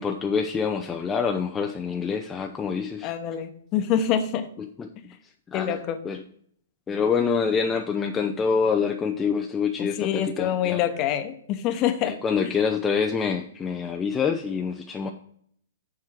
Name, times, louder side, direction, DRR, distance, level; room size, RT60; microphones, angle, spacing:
voice 1, 0.0-3.1 4.8-4.9 5.5-6.2 6.9-10.8 12.0-15.1, left 6 dB, 15° left, 4 dB, 0.5 m, -26 dB
voice 2, 3.0-4.5 5.5-6.0 9.8-12.2 12.4-12.5, left 9 dB, 35° left, 9 dB, 0.9 m, -26 dB
7.3 x 4.8 x 6.3 m, 0.64 s
figure-of-eight pair, 110°, 0 cm